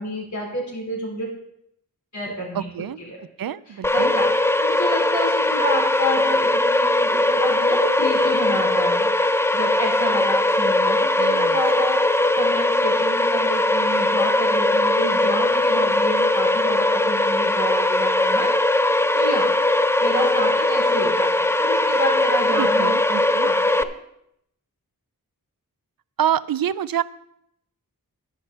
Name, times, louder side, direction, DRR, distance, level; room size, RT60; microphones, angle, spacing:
voice 1, 0.0-1.3 2.1-3.2 3.7-9.1 9.5-18.5 19.1-19.5 20.0-23.9, equal, 50° left, -3 dB, 4.3 m, -30 dB
voice 2, 2.5-3.0 3.4-4.1 11.2-11.6 22.6-23.5 26.2-27.0, right 10 dB, 70° right, 17 dB, 0.5 m, -26 dB
sound 1, 3.8-23.8, left 1 dB, 5° left, 0.4 m, -20 dB
11.0 x 9.8 x 4.2 m, 0.76 s
wide cardioid pair, 85°, 36 cm